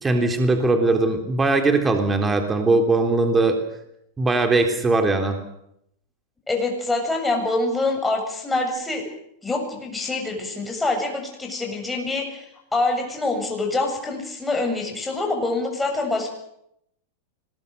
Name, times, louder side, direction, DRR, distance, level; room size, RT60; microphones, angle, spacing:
voice 1, 0.0-3.6 4.2-5.4, right 3 dB, 15° right, 5 dB, 3.4 m, -20 dB
voice 2, 6.5-9.0 9.4-12.5 12.7-16.3, left 2 dB, 10° left, 2 dB, 7.6 m, -25 dB
25.5 x 21.0 x 6.9 m, 0.77 s
hypercardioid pair, 120°, 0 cm